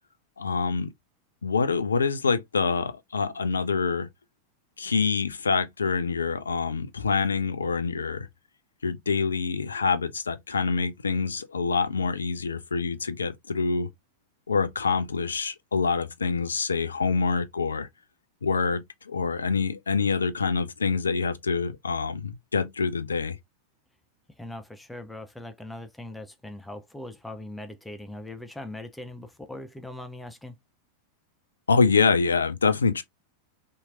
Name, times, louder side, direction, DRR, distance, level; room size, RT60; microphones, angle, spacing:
voice 1, 0.4-0.9 1.4-4.1 4.8-8.3 8.8-13.9 14.5-17.9 18.4-23.4 31.7-33.0, left 5 dB, 75° left, 0.4 m, -26 dB
voice 2, 24.3-30.6, left 1 dB, 5° left, 0.4 m, -40 dB
2.8 x 2.7 x 2.3 m
figure-of-eight pair, 90°, 0 cm